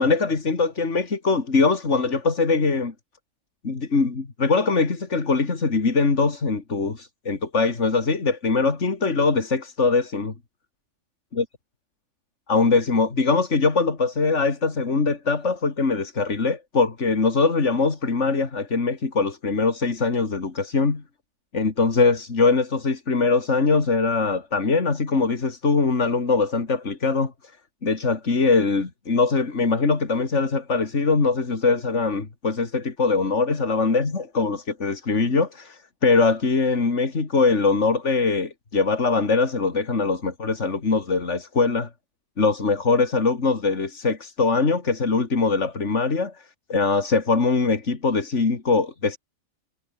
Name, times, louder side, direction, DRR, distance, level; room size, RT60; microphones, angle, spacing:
voice 1, 0.0-2.9 3.6-10.3 11.4-11.5 12.5-21.0 21.5-27.3 27.8-41.9 42.4-46.4 46.7-49.2, left 4 dB, 55° left, 2.9 m, -22 dB
omnidirectional pair, 1.5 m